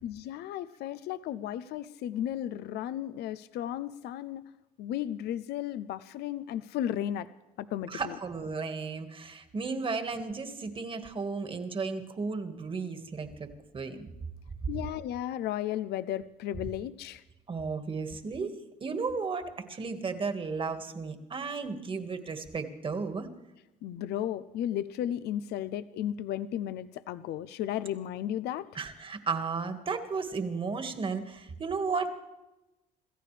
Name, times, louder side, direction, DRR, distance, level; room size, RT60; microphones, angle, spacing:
voice 1, 0.0-4.5 4.8-7.3 7.6-8.1 14.7-17.2 23.8-28.7, left 11 dB, 75° left, 14 dB, 0.6 m, -34 dB
voice 2, 7.9-13.5 13.7-14.1 17.5-18.5 18.8-23.3 28.8-32.1, right 4 dB, 30° right, 7 dB, 1.8 m, -34 dB
27.0 x 14.5 x 3.4 m, 1.0 s
cardioid pair, 110°, 17 cm